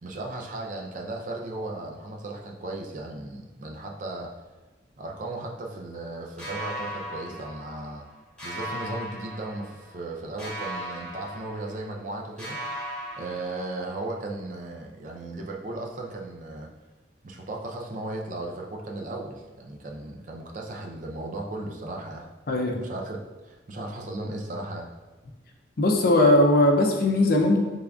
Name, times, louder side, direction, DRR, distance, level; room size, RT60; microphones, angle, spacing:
voice 1, 0.0-4.3 5.0-8.1 8.4-12.6 13.1-16.7 17.2-22.3 22.8-24.9, right 2 dB, 45° right, 1 dB, 0.4 m, -36 dB
sound 1, 6.4-8.1 8.4-10.0 10.4-12.1 12.4-14.1, equal, 5° left, 0.8 m, -37 dB
voice 2, 22.5-22.8 25.8-27.6, left 1 dB, 50° left, 2 dB, 0.5 m, -19 dB
3.7 x 3.4 x 2.3 m, 1.2 s
head